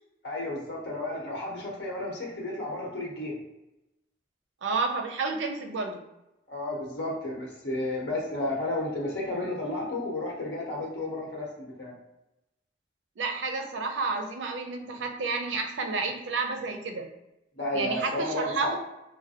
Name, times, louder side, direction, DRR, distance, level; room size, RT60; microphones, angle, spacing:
voice 1, 0.2-3.4 6.5-11.9 17.5-18.7, left 1 dB, 80° left, -3 dB, 1.1 m, -32 dB
voice 2, 4.6-6.0 13.2-17.1 17.7-18.8, right 4 dB, 90° right, 4 dB, 0.5 m, -30 dB
3.2 x 2.2 x 2.8 m, 0.93 s
head